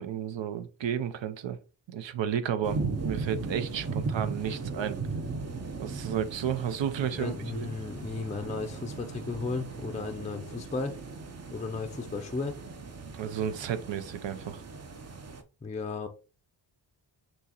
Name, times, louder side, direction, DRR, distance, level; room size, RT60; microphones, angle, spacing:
voice 1, 0.0-1.6 1.9-5.0 5.8-7.7 13.1-14.6, right 8 dB, 70° right, 0.7 m, -32 dB
sound 1, 2.6-15.4, right 4 dB, 35° right, 0.7 m, -37 dB
voice 2, 7.2-11.0 11.5-12.5 15.6-16.1, left 4 dB, 15° left, 0.5 m, -34 dB
6.2 x 2.9 x 2.9 m
wide cardioid pair, 90°, 46 cm